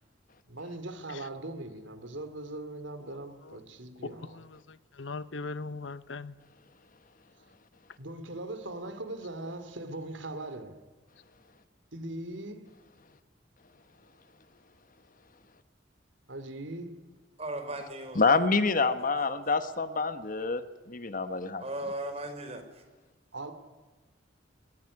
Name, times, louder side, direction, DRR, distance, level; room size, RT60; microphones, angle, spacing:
voice 1, 0.5-4.4 8.0-10.8 11.9-12.7 16.3-17.0 23.3-23.5, right 2 dB, 80° right, 3.0 m, -40 dB
voice 2, 3.1-3.6 4.0-6.3, left 3 dB, 80° left, 1.0 m, -40 dB
voice 3, 17.4-18.2 21.6-22.8, right 1 dB, 35° right, 4.1 m, -37 dB
voice 4, 18.1-20.6 20.9-21.6, left 4 dB, 45° left, 1.3 m, -27 dB
22.0 x 21.0 x 9.8 m
head